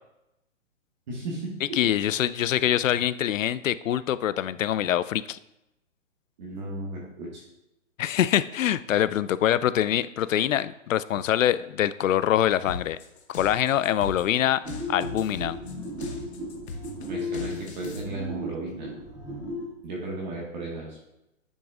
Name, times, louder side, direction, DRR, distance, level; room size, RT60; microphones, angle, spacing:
voice 1, 1.1-1.8 6.4-7.4 17.1-18.9 19.8-21.0, right 2 dB, 35° right, -3 dB, 1.5 m, -35 dB
voice 2, 1.7-5.4 8.0-13.0 13.3-14.6 14.9-15.6, left 11 dB, 75° left, 16 dB, 0.5 m, -24 dB
sound 1, 12.7-18.0, left 4 dB, 55° left, 1.3 m, -39 dB
sound 2, 14.6-19.7, left 1 dB, 10° right, 2.7 m, -36 dB
10.5 x 6.3 x 2.4 m, 0.88 s
hypercardioid pair, 165°, 39 cm